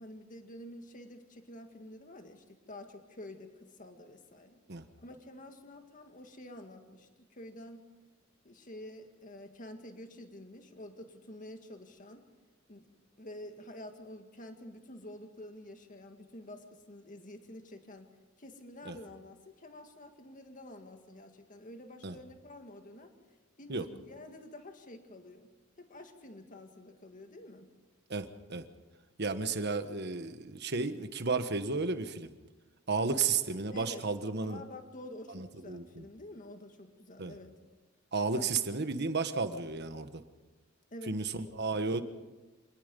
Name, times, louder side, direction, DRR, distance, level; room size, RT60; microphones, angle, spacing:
voice 1, 0.0-4.6 5.0-7.9 8.4-12.3 12.7-12.9 13.2-18.1 18.4-23.1 23.6-25.5 25.8-27.7 33.0-33.2 33.7-34.1 34.4-37.6 38.3-38.5 40.9-41.5, left 1 dB, 40° left, 5 dB, 1.9 m, -49 dB
voice 2, 28.1-28.7 29.2-32.3 32.9-34.6 35.3-36.0 37.2-37.3 38.1-40.2 41.1-42.0, right 4 dB, 55° right, 9 dB, 1.3 m, -33 dB
26.0 x 19.5 x 5.4 m, 1.2 s
head